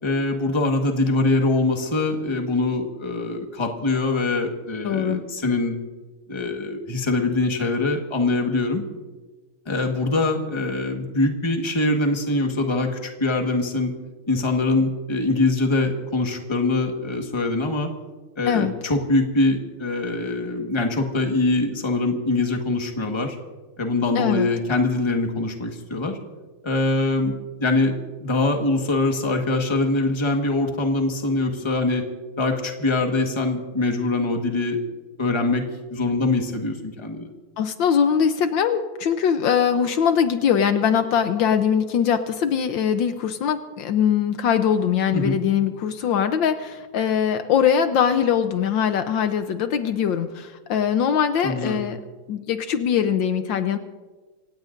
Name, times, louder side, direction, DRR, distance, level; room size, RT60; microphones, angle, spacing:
voice 1, 0.0-5.7 6.3-8.8 9.6-13.9 14.3-17.9 18.4-23.4 23.8-26.2 26.6-32.1 32.4-34.8 35.2-37.3 45.1-45.4 51.4-51.8, left 2 dB, 15° left, 3 dB, 1.3 m, -23 dB
voice 2, 4.8-5.2 18.5-18.7 24.1-24.5 37.6-52.0 52.3-53.8, left 8 dB, 75° left, 9 dB, 1.5 m, -22 dB
26.5 x 17.0 x 2.6 m, 1.3 s
omnidirectional pair, 2.2 m